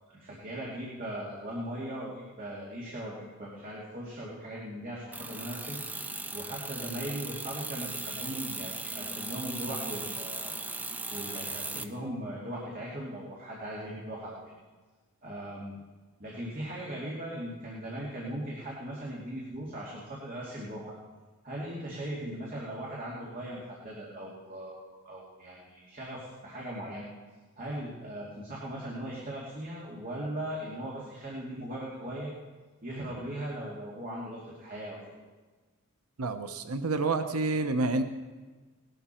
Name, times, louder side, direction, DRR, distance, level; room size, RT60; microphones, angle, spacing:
voice 1, 0.1-5.8 6.3-10.6 10.8-14.4 15.2-15.8 16.2-21.0 21.4-27.1 27.6-32.3 32.8-35.0, right 1 dB, 40° right, -5 dB, 2.4 m, -39 dB
sound 1, 5.1-11.9, right 2 dB, 5° right, 0.6 m, -38 dB
voice 2, 36.2-38.0, right 3 dB, 80° right, 8 dB, 0.9 m, -28 dB
19.0 x 12.0 x 4.4 m, 1.3 s
head